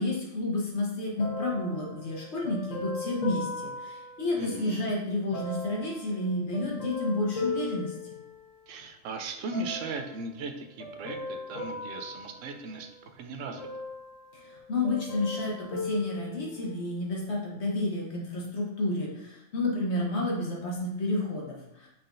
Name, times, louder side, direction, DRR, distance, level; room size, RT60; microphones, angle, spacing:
voice 1, 0.0-7.9 14.3-21.9, left 2 dB, 60° left, -2 dB, 1.3 m, -30 dB
sound 1, 1.2-4.8 5.3-8.8 9.5-10.2 10.8-13.1 13.6-14.6 14.8-16.9 17.5-17.6, left 2 dB, 75° left, 1.3 m, -38 dB
voice 2, 4.4-4.8 8.7-13.7, right 3 dB, 75° right, 5 dB, 0.9 m, -37 dB
5.7 x 3.7 x 2.5 m, 0.84 s
omnidirectional pair, 1.3 m